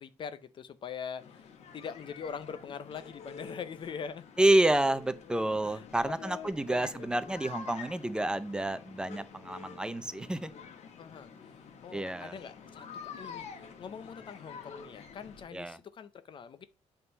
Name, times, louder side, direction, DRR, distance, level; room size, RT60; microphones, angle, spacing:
voice 1, 0.0-4.3 5.6-7.3 11.0-11.3 11.8-16.6, left 7 dB, 45° left, 0.6 m, -43 dB
sound 1, 1.2-15.4, left 5 dB, 70° left, 1.5 m, -48 dB
voice 2, 4.4-10.5 11.9-12.3 15.5-15.8, right 1 dB, 5° right, 0.5 m, -29 dB
8.4 x 3.8 x 5.3 m
cardioid pair, 155°, 12 cm